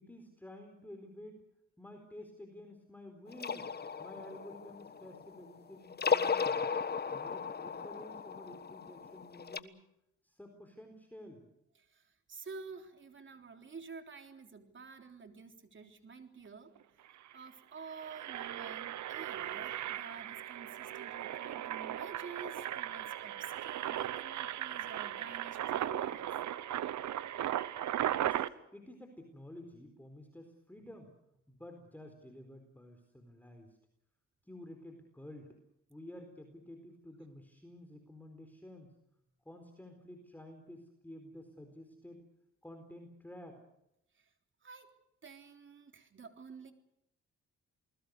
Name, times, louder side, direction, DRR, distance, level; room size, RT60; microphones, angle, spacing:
voice 1, 0.0-1.4 1.8-3.7 4.0-6.8 7.1-9.8 10.2-11.5 28.7-31.1 31.5-33.8 34.4-35.6 35.9-38.9 39.4-42.2 42.6-43.6, left 1 dB, 5° left, 4 dB, 4.3 m, -51 dB
sound 1, 3.3-5.5 5.9-9.6, left 5 dB, 35° left, 1.4 m, -35 dB
voice 2, 11.9-16.8 17.3-26.3 44.1-44.3 44.6-44.9 45.2-46.7, right 5 dB, 40° right, 6 dB, 3.7 m, -50 dB
Engine, 16.8-16.9 17.1-17.3 17.8-28.5, right 12 dB, 70° right, 1.1 m, -37 dB
29.0 x 20.5 x 6.7 m, 0.81 s
cardioid pair, 90°, 30 cm